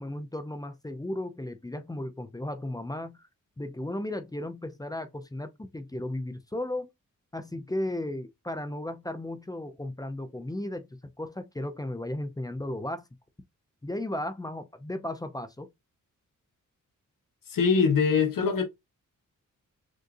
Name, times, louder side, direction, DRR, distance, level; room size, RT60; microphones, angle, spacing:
voice 1, 0.0-3.3 3.6-6.9 7.3-13.0 13.8-15.7, left 1 dB, 10° left, 0.5 m, -35 dB
voice 2, 17.5-18.6, left 5 dB, 75° left, 1.3 m, -23 dB
6.5 x 2.6 x 2.6 m
cardioid pair, 80°, 33 cm